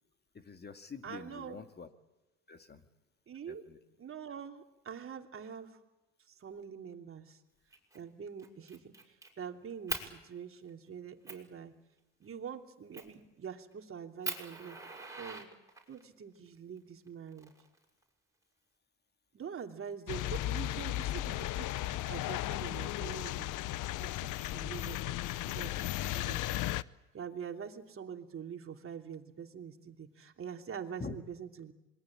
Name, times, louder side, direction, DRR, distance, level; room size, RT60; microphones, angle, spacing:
voice 1, 0.3-1.9 2.5-2.8 3.5-3.8 31.0-31.2, left 4 dB, 25° left, 7 dB, 2.2 m, -45 dB
voice 2, 1.0-1.6 3.3-3.7 4.0-5.8 6.3-7.4 7.9-11.7 12.2-14.8 15.2-15.5 15.9-17.5 19.3-26.4 27.1-31.7, right 7 dB, 35° right, 4 dB, 3.0 m, -45 dB
Fire, 7.7-8.0 8.4-9.3 9.9-10.1 10.7-10.8 11.3-11.5 12.9-13.2 13.7-13.8 14.2-16.0 17.1-18.0, right 3 dB, 10° right, 6.2 m, -41 dB
sound 1, 20.1-26.8, left 15 dB, 55° left, 0.8 m, -35 dB
27.0 x 22.5 x 8.8 m, 1.0 s
hypercardioid pair, 85°, 37 cm